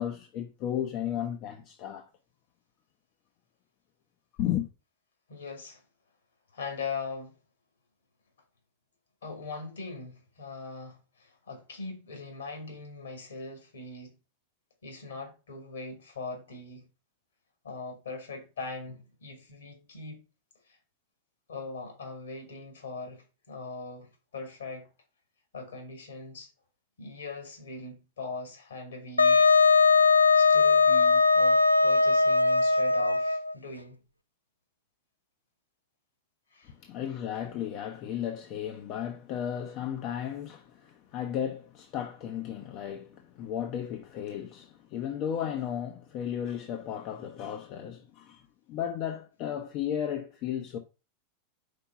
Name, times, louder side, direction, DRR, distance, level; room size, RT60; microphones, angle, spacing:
voice 1, 0.0-2.1 4.4-4.7 36.6-50.8, left 10 dB, 40° left, 0.7 m, -34 dB
voice 2, 5.3-5.8 6.5-7.3 9.2-14.2 14.8-16.9 17.6-20.2 20.7-20.8 21.5-24.9 25.5-26.5 27.0-29.4 30.4-34.0 36.5-36.7, left 4 dB, 70° left, 2.6 m, -41 dB
Wind instrument woodwind instrument, 29.2-33.5, left 4 dB, 85° left, 0.4 m, -20 dB
5.2 x 4.5 x 5.5 m
figure-of-eight pair, 90°, 0 cm